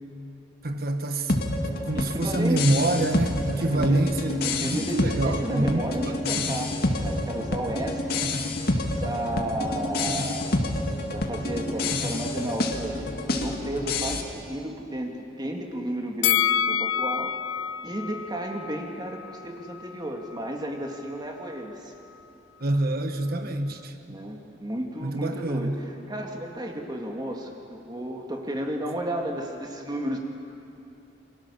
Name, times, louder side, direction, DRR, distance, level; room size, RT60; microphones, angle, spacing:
voice 1, 0.6-1.3 1.8-6.4 22.6-24.2 25.0-25.8, right 2 dB, 55° right, 6 dB, 1.4 m, -26 dB
sound 1, 1.3-14.2, left 2 dB, 55° left, 2.2 m, -28 dB
voice 2, 1.9-3.0 3.6-8.2 9.0-10.5 11.1-17.3 17.8-21.9 24.1-30.2, right 1 dB, 25° right, 1 dB, 2.3 m, -33 dB
Bell, 16.2-19.4 19.8-19.9, left 9 dB, 85° left, 0.6 m, -27 dB
28.0 x 24.0 x 7.1 m, 2.8 s
head